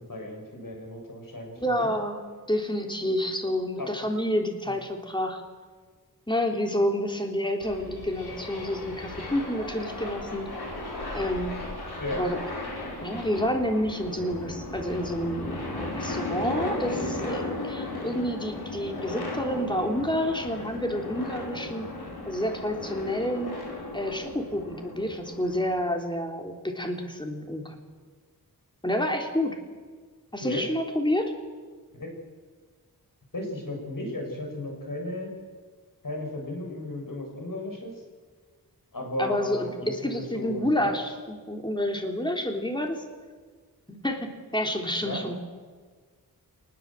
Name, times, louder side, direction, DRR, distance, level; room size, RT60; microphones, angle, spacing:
voice 1, 0.0-1.9 3.8-3.9 4.7-4.8 12.0-12.2 30.4-30.6 31.9-32.1 33.3-35.3 36.0-37.9 38.9-40.9 45.0-45.4, left 1 dB, 60° left, 1 dB, 7.4 m, -35 dB
voice 2, 1.6-2.2 2.5-5.4 6.3-10.5 11.1-11.5 12.1-12.4 13.0-21.9 22.3-23.5 23.9-27.8 28.8-29.6 30.3-31.3 39.2-43.0 43.9-45.3, left 1 dB, 10° left, 3 dB, 3.6 m, -29 dB
sound 1, 7.6-25.8, left 2 dB, 90° left, 5.3 m, -36 dB
24.0 x 20.0 x 7.7 m, 1.5 s
wide cardioid pair, 60°, 37 cm